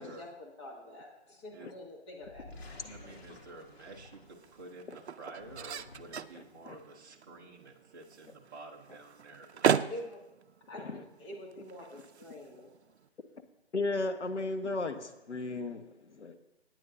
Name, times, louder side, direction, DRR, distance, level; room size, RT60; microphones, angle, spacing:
voice 1, 0.0-2.6 9.9-10.2 10.7-12.7, left 1 dB, 25° left, -3 dB, 2.2 m, -46 dB
sound 1, 2.2-4.7 5.2-6.4, left 2 dB, 65° left, 2.7 m, -52 dB
sound 2, 2.7-13.1, right 7 dB, 70° right, 0.5 m, -38 dB
voice 2, 2.9-9.9, right 2 dB, 20° right, -2 dB, 0.8 m, -50 dB
voice 3, 6.3-6.8 10.7-11.0 13.7-16.4, left 2 dB, 90° left, 7 dB, 1.4 m, -36 dB
18.0 x 9.3 x 2.7 m, 0.92 s
figure-of-eight pair, 155°, 34 cm